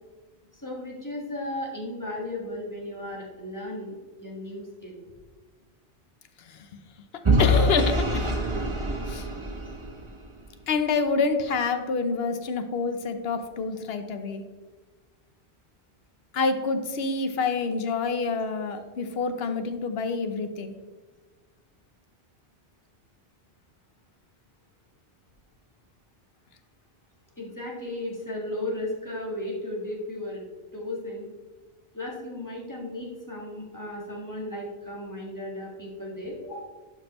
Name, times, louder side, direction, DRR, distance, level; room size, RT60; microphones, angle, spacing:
voice 1, 0.5-5.0 27.4-30.4 30.7-31.3 31.9-36.7, left 1 dB, 15° left, -3 dB, 1.7 m, -35 dB
Vehicle / Engine, 7.2-10.3, equal, 30° right, 0.9 m, -24 dB
voice 2, 7.4-8.4 9.1-9.3 10.7-14.4 16.3-20.7, left 4 dB, 65° left, 8 dB, 1.0 m, -27 dB
11.5 x 5.2 x 3.0 m, 1.3 s
omnidirectional pair, 1.1 m